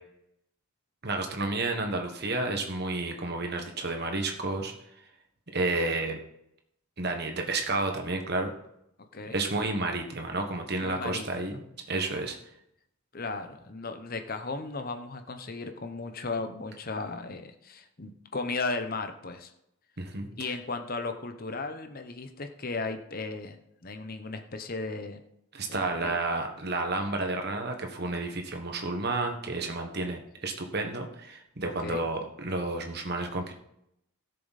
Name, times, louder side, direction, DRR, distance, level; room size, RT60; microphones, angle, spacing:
voice 1, 1.0-4.7 5.5-6.2 7.0-8.5 9.3-11.6 11.9-12.4 20.0-20.5 25.5-33.5, right 2 dB, 45° right, 4 dB, 1.4 m, -31 dB
voice 2, 10.8-11.6 13.1-19.5 20.4-25.2 25.7-26.2 31.8-32.0, left 3 dB, 40° left, 7 dB, 0.9 m, -36 dB
16.5 x 6.8 x 4.1 m, 0.80 s
head